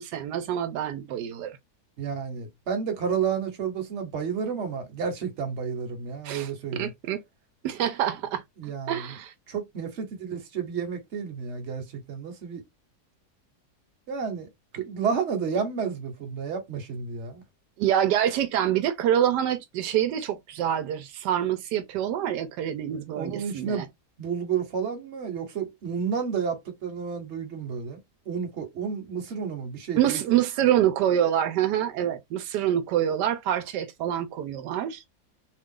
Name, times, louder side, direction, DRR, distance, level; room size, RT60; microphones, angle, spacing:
voice 1, 0.0-1.6 6.2-7.2 7.6-9.3 17.8-23.9 30.0-35.0, right 10 dB, 85° right, 1.2 m, -26 dB
voice 2, 2.0-6.9 8.6-9.1 9.5-12.6 14.1-14.5 14.7-17.4 23.1-23.9 24.2-28.0 28.3-30.2, right 6 dB, 50° right, 1.1 m, -31 dB
3.0 x 2.3 x 3.6 m
omnidirectional pair, 1.8 m